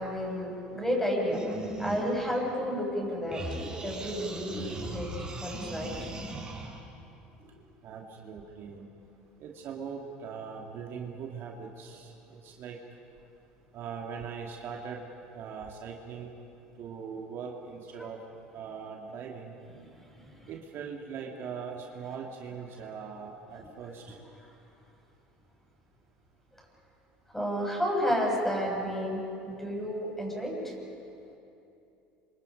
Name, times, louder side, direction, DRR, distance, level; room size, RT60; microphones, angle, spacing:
voice 1, 0.0-1.5 1.8-3.4 3.8-5.1 5.4-6.1 20.2-20.3 27.3-30.7, equal, 5° left, -1 dB, 7.7 m, -31 dB
sound 1, 1.3-3.0 3.3-6.8, right 2 dB, 20° right, 5.8 m, -38 dB
voice 2, 7.8-8.8 9.4-12.8 13.7-15.1 15.3-16.3 16.8-18.2 18.5-19.5 20.5-24.2, right 6 dB, 55° right, 0 dB, 2.4 m, -41 dB
27.5 x 26.0 x 5.3 m, 2.8 s
hypercardioid pair, 80°, 5 cm